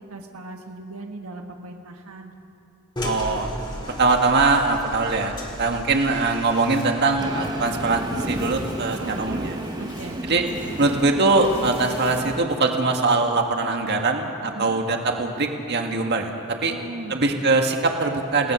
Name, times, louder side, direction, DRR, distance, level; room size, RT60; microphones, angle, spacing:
voice 1, 0.0-2.4 9.0-9.2 9.8-10.2 14.5-14.8 16.7-17.3, right 2 dB, 80° right, 2 dB, 1.5 m, -38 dB
sound 1, 3.0-8.0, left 1 dB, 20° left, 3.0 m, -35 dB
voice 2, 3.0-3.5 4.0-5.3 5.6-9.6 10.2-10.4 10.8-16.3 16.6-16.7 17.1-18.5, right 3 dB, 50° right, 3 dB, 2.0 m, -22 dB
sound 2, 6.1-12.2, left 3 dB, 60° left, 6.8 m, -46 dB
Train, 7.2-12.5, right 1 dB, 20° right, 0.8 m, -32 dB
29.0 x 19.0 x 6.4 m, 2.9 s
head